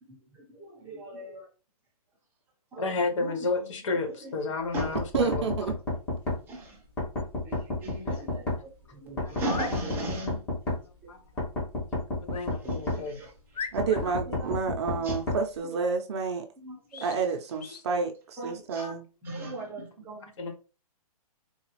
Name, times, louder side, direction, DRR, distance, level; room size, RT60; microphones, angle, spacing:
voice 1, 0.0-1.5 2.7-4.4 4.7-5.0 5.7-5.8 6.5-6.9 7.4-10.5 11.0-11.1 12.5-13.7 14.3-15.2 15.7-15.9 16.6-17.1 18.4-18.9 19.2-20.4, right 1 dB, 10° right, 0.7 m, -39 dB
voice 2, 2.8-5.5 8.1-8.2 9.2-9.3 11.1-11.2 12.2-13.2 18.4-18.5 18.8-18.9 19.3-19.4 20.4-20.5, left 3 dB, 50° left, 0.8 m, -32 dB
sound 1, 4.8-6.4 7.0-8.6 9.2-10.8 11.4-13.0 13.8-15.4, left 2 dB, 10° left, 1.0 m, -30 dB
voice 3, 5.1-5.7 13.7-16.4 17.0-19.0, right 5 dB, 45° right, 0.6 m, -29 dB
sound 2, 9.3-9.8 12.3-12.5 13.0-13.1 13.5-14.2 16.9-17.2 17.6-17.9, left 6 dB, 90° left, 0.5 m, -39 dB
3.9 x 2.3 x 3.0 m
hypercardioid pair, 155°, 20 cm